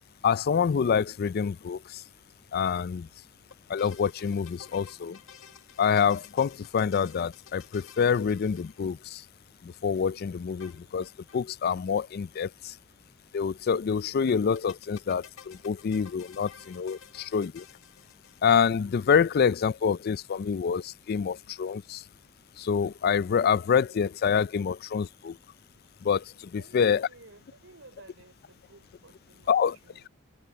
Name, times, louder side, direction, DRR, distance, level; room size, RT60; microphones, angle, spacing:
voice 1, 0.2-2.0 2.5-3.1 3.7-5.2 5.8-9.2 9.6-12.7 13.3-17.6 18.4-22.0 22.6-25.4 26.0-27.1 29.5-29.8, left 6 dB, 50° left, 0.4 m, -26 dB
sound 1, 3.5-9.3 10.6-11.5 11.7-11.8 12.0-12.1 14.3-18.8, left 7 dB, 75° left, 2.0 m, -53 dB
voice 2, 26.5-30.1, right 2 dB, 70° right, 5.1 m, -61 dB
head